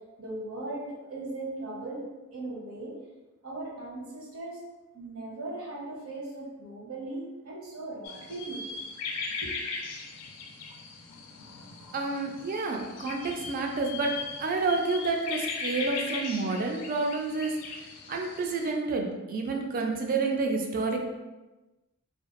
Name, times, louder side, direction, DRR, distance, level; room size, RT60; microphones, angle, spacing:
voice 1, 0.2-2.1 2.3-2.9 3.4-4.6 4.9-8.6 9.4-9.5, right 2 dB, 70° right, -4 dB, 0.8 m, -38 dB
sound 1, 8.0-18.7, left 4 dB, 90° left, 0.4 m, -38 dB
voice 2, 11.9-14.1 14.4-21.0, right 3 dB, 40° right, 2 dB, 0.3 m, -29 dB
2.5 x 2.2 x 2.4 m, 1.1 s
head